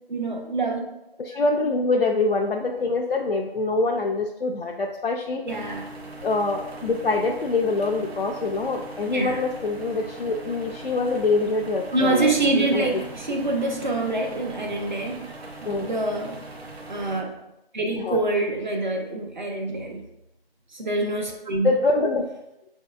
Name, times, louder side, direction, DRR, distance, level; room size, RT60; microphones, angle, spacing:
voice 1, 0.1-0.9 5.5-5.9 9.1-9.4 11.9-15.3 15.6-16.5 16.9-17.4 17.7-20.0 20.7-21.7, right 2 dB, 50° right, 2 dB, 0.6 m, -26 dB
voice 2, 1.2-5.7 6.2-13.0 15.6-15.9 17.9-18.2 21.6-22.3, left 3 dB, 65° left, 0 dB, 0.4 m, -25 dB
sound 1, 5.5-17.2, right 2 dB, 85° right, 0.8 m, -40 dB
5.5 x 2.7 x 2.2 m, 0.86 s
figure-of-eight pair, 165°, 31 cm